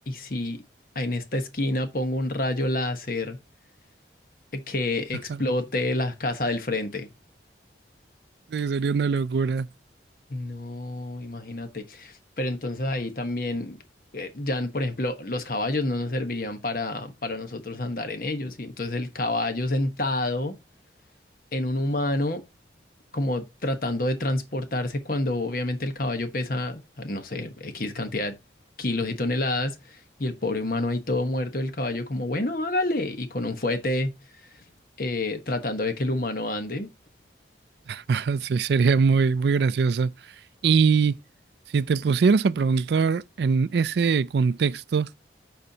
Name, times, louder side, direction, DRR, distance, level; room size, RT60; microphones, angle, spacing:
voice 1, 0.1-0.6 0.9-3.4 4.5-7.1 10.3-13.8 14.1-20.5 21.5-22.4 23.1-28.3 28.8-34.2 35.0-36.9, left 2 dB, 50° left, 1.1 m, -28 dB
voice 2, 8.5-9.7 37.9-40.1 40.6-41.2 41.7-45.1, right 5 dB, 65° right, 0.4 m, -22 dB
12.0 x 4.4 x 2.8 m
head